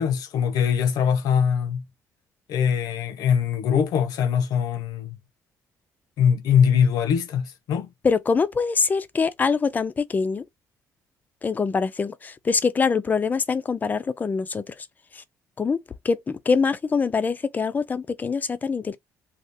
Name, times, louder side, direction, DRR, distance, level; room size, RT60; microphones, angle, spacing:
voice 1, 0.0-1.8 2.5-5.2 6.2-7.9, left 7 dB, 80° left, 0.8 m, -22 dB
voice 2, 8.0-10.4 11.4-14.6 15.6-15.8 16.0-19.0, left 5 dB, 25° left, 0.4 m, -24 dB
2.8 x 2.4 x 3.4 m
cardioid pair, 115°, 7 cm